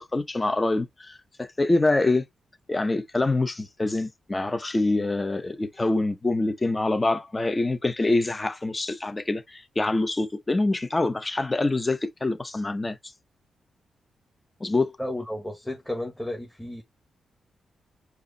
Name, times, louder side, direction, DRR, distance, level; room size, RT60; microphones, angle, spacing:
voice 1, 0.0-2.2 2.7-13.0 14.6-15.0, left 2 dB, 20° left, 0.8 m, -25 dB
voice 2, 15.0-16.8, left 1 dB, 5° left, 1.3 m, -33 dB
4.8 x 2.7 x 4.0 m
cardioid pair, 95°, 0 cm